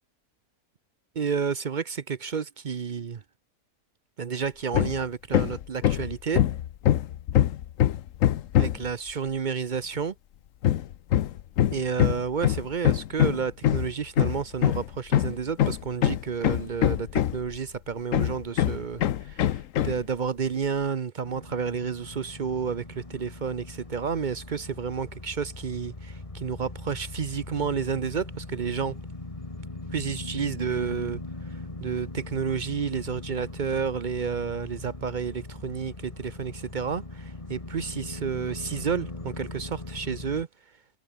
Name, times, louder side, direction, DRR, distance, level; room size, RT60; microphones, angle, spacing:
voice 1, 1.2-3.2 4.2-6.4 8.6-10.1 11.7-29.0 29.9-31.2 31.8-40.5, right 6 dB, 45° right, 0.6 m, -30 dB
Hammer, 4.7-5.0 5.3-8.9 10.6-17.6 18.1-20.0, left 11 dB, 65° left, 1.1 m, -23 dB
sound 1, 21.2-40.4, left 2 dB, 20° left, 2.1 m, -40 dB
omnidirectional pair, 1.6 m